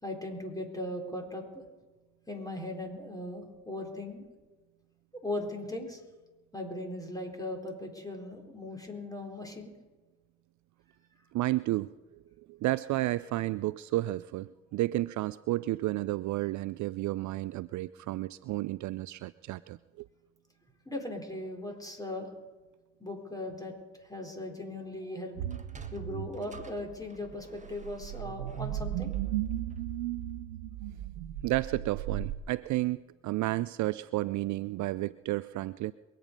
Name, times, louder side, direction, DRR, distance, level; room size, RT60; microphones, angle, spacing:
voice 1, 0.0-1.6 2.3-4.2 5.2-6.0 6.5-9.7 20.9-22.3 23.0-25.4 25.9-29.3, left 1 dB, 10° left, 2 dB, 4.1 m, -38 dB
voice 2, 11.3-11.9 12.4-20.1 31.4-35.9, right 17 dB, 55° right, 18 dB, 0.4 m, -32 dB
Sliding door, 25.4-30.0, right 3 dB, 20° right, 1.6 m, -55 dB
Weird wobbling synth noise, 25.4-32.4, right 12 dB, 85° right, 0.7 m, -36 dB
23.0 x 9.2 x 5.4 m, 1.2 s
hypercardioid pair, 55°, 37 cm